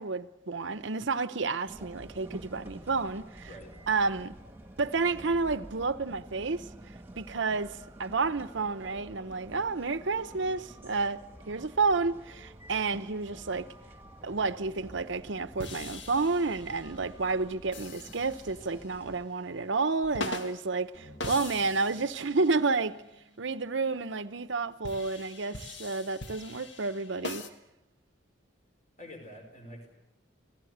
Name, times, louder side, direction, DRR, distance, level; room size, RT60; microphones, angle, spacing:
voice 1, 0.0-3.5 3.9-4.3 4.8-6.6 7.2-13.7 14.2-22.9 23.4-27.4, right 4 dB, 65° right, 0.8 m, -30 dB
sound 1, 1.7-19.3, right 1 dB, 10° right, 1.8 m, -49 dB
voice 2, 3.5-3.8 29.0-29.9, left 1 dB, 40° left, 5.2 m, -46 dB
sound 2, 15.6-17.0 17.7-18.9 20.0-20.7 21.2-22.6 24.8-27.5, left 2 dB, 65° left, 1.7 m, -41 dB
sound 3, 20.9-25.3, equal, 15° left, 2.3 m, -57 dB
27.5 x 18.5 x 8.0 m
head